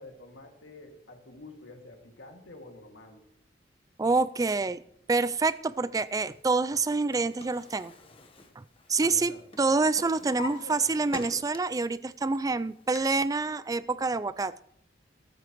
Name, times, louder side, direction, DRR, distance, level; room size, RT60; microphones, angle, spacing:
voice 1, 0.0-3.2 9.0-9.4 10.2-10.8, left 2 dB, 70° left, 3 dB, 2.2 m, -48 dB
voice 2, 4.0-4.8 5.1-7.9 8.6-9.3 9.6-14.6, right 3 dB, 20° right, 16 dB, 0.3 m, -27 dB
Drawer open or close, 6.8-9.2 9.5-11.9 12.3-13.0, left 2 dB, 30° left, 1.1 m, -44 dB
13.5 x 13.5 x 3.1 m, 0.74 s
head